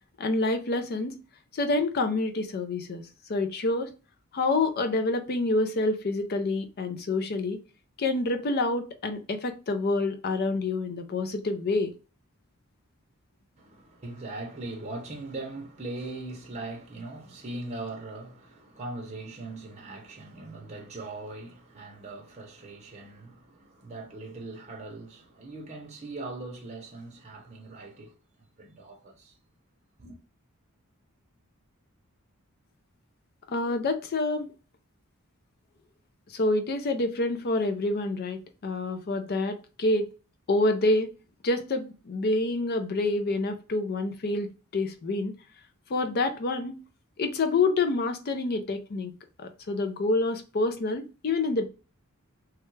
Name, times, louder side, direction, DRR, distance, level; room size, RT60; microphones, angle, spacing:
voice 1, 0.2-1.2 1.5-3.0 3.3-3.9 4.3-7.6 8.0-11.9 33.5-34.5 36.3-40.1 40.5-41.1 41.4-45.3 45.9-46.8 47.2-49.1 49.4-51.6, left 2 dB, 45° left, 0.5 m, -27 dB
voice 2, 13.6-28.2 28.6-29.3 30.0-30.2, right 2 dB, 30° right, 0.7 m, -40 dB
3.2 x 2.3 x 3.1 m
head